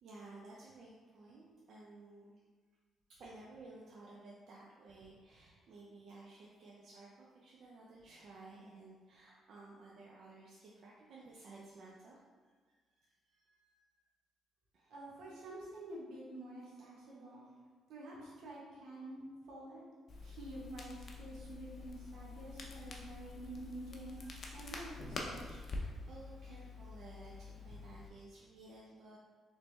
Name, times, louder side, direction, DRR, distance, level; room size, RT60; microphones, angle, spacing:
voice 1, 0.0-2.3 3.2-14.0 14.7-14.9 17.1-17.4 24.1-29.2, right 2 dB, 60° right, -5 dB, 0.6 m, -56 dB
voice 2, 14.9-17.5 17.9-19.8 20.2-25.6, right 1 dB, 80° right, -4 dB, 1.2 m, -49 dB
Crackle, 20.1-28.1, left 3 dB, 45° left, 0.7 m, -47 dB
3.9 x 3.3 x 3.3 m, 1.5 s
cardioid pair, 90°, 0 cm